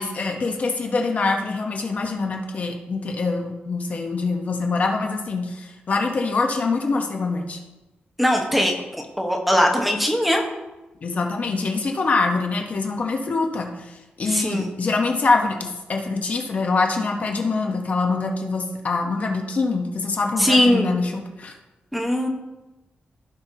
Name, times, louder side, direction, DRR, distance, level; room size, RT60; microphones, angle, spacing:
voice 1, 0.0-7.6 11.0-13.9 14.2-21.5, left 3 dB, 45° left, 2 dB, 1.0 m, -24 dB
voice 2, 8.2-10.4 14.3-14.7 20.4-20.9 21.9-22.3, equal, ahead, 1 dB, 1.1 m, -20 dB
15.5 x 5.6 x 2.8 m, 1.1 s
wide cardioid pair, 150°, 4 cm